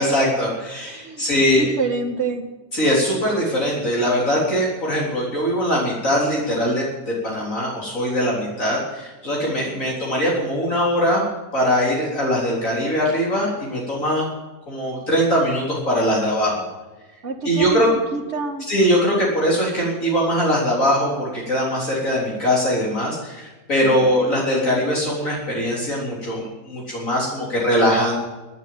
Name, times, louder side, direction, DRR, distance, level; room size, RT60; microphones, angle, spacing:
voice 1, 0.0-1.7 2.7-11.2 11.5-14.3 14.7-16.7 17.4-17.9 18.7-28.2, equal, 60° left, -5 dB, 4.3 m, -21 dB
voice 2, 0.9-2.4 9.6-9.8 17.2-18.7 23.8-24.0, right 3 dB, 45° right, -2 dB, 2.1 m, -27 dB
12.0 x 11.0 x 8.7 m, 1.1 s
omnidirectional pair, 1.5 m